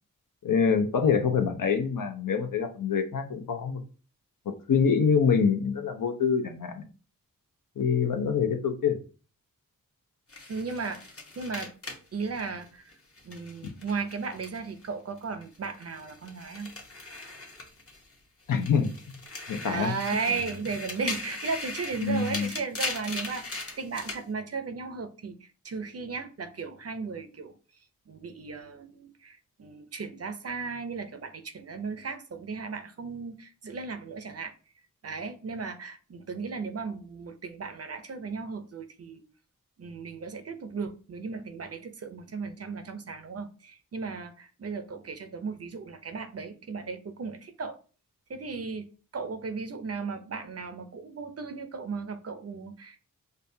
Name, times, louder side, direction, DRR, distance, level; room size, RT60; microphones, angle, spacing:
voice 1, 0.4-3.8 4.7-6.8 7.8-9.0 18.5-19.2 19.5-19.9 22.0-22.5, left 6 dB, 65° left, 0.7 m, -25 dB
sound 1, 10.3-14.9 15.2-18.1 18.5-24.2, left 3 dB, 40° left, 1.0 m, -39 dB
voice 2, 10.5-11.0 11.4-11.7 12.1-12.8 13.2-16.7 19.6-27.5 28.1-34.5 35.0-39.2 39.8-47.8 48.3-53.0, right 4 dB, 45° right, 0.6 m, -36 dB
5.2 x 2.3 x 2.7 m
wide cardioid pair, 75°, 35 cm